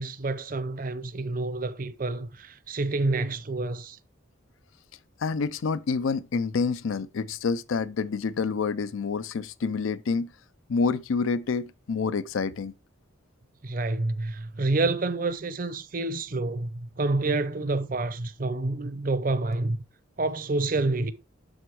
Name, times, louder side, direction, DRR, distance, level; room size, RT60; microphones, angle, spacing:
voice 1, 0.0-4.0 13.6-19.8 20.2-21.1, right 2 dB, 40° right, 0.6 m, -28 dB
voice 2, 5.2-10.3 10.7-12.7, left 4 dB, 75° left, 0.5 m, -28 dB
7.9 x 6.1 x 4.6 m
head